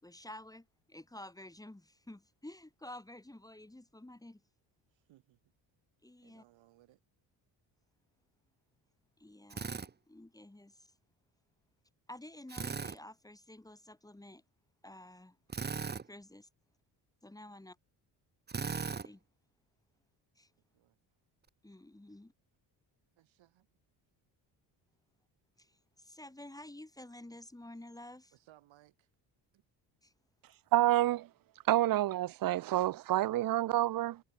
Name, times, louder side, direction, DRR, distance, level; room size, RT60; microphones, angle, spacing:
voice 1, 0.0-4.4 6.0-6.4 9.2-10.9 12.1-14.4 14.8-15.4 16.1-16.5 17.2-17.8 18.7-19.2 20.4-20.5 21.6-22.3 25.6-28.3 30.0-30.1, left 1 dB, 10° left, 4.2 m, -51 dB
voice 2, 4.9-5.4 6.2-7.0 20.7-21.0 23.2-23.7 28.3-29.1 29.5-29.6, right 15 dB, 85° right, 6.7 m, -64 dB
Drill, 9.5-9.9 12.5-13.0 15.5-16.1 18.5-19.1, right 5 dB, 20° right, 1.1 m, -37 dB
voice 3, 30.7-31.3 31.7-34.2, right 14 dB, 50° right, 0.6 m, -28 dB
cardioid pair, 125°, 45 cm